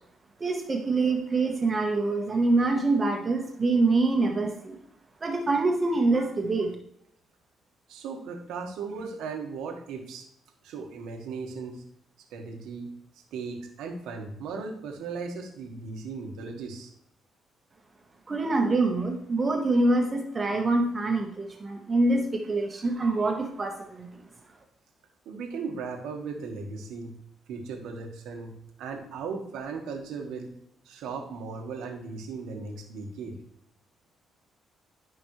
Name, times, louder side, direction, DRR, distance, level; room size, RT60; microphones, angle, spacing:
voice 1, 0.4-4.8 5.2-6.7 18.3-24.2, right 2 dB, 30° right, 3 dB, 1.3 m, -25 dB
voice 2, 7.9-10.3 10.6-11.8 12.3-12.9 13.3-16.9 25.2-27.2 27.5-30.5 30.8-33.3, right 4 dB, 90° right, 3 dB, 1.5 m, -37 dB
12.5 x 5.2 x 3.2 m, 0.74 s
cardioid pair, 90°, 0 cm